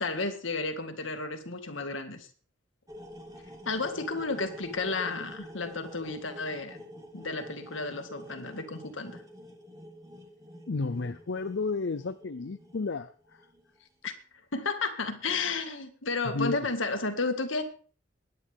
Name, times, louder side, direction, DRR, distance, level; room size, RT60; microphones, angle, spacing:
voice 1, 0.0-2.3 3.7-6.8 7.1-9.2 14.0-14.1 14.5-17.6, left 3 dB, 90° left, 6 dB, 2.0 m, -32 dB
sound 1, 2.9-13.8, equal, 20° right, 2.1 m, -47 dB
voice 2, 10.7-13.5 13.8-13.9 16.3-16.7, left 4 dB, 70° left, 11 dB, 0.6 m, -32 dB
21.0 x 9.7 x 3.6 m, 0.40 s
head